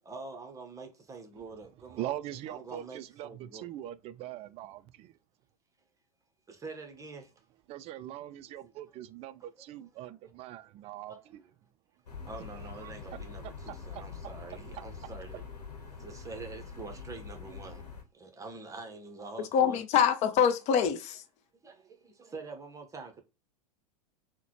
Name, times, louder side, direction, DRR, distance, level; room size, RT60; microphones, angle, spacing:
voice 1, 0.0-2.2 2.5-3.7 6.5-7.3 8.6-8.8 9.5-10.1 10.4-10.6 11.1-11.4 12.3-15.5 15.9-17.9 18.1-19.8 21.6-23.2, right 3 dB, 15° right, 0.8 m, -46 dB
voice 2, 1.9-5.1 7.7-11.2 12.8-12.9 13.4-13.7, right 13 dB, 30° right, 0.3 m, -41 dB
sound 1, 12.1-18.0, left 5 dB, 80° left, 0.9 m, -44 dB
voice 3, 19.5-21.2, left 8 dB, 35° left, 0.5 m, -25 dB
3.8 x 2.2 x 2.9 m
hypercardioid pair, 95°, 20 cm